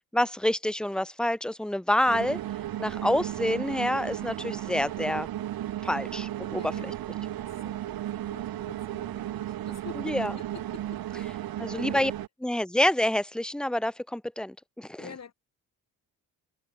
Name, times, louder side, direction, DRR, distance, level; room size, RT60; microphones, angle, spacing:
voice 1, 0.1-2.4 2.8-5.3 5.8-6.9 10.0-10.3 11.6-12.1 12.4-15.0, left 1 dB, ahead, 1.3 m, -27 dB
sound 1, 2.1-12.3, right 13 dB, 75° right, 1.6 m, -34 dB
voice 2, 6.6-11.9 15.0-15.3, left 7 dB, 45° left, 7.3 m, -48 dB
cardioid pair, 105°, 36 cm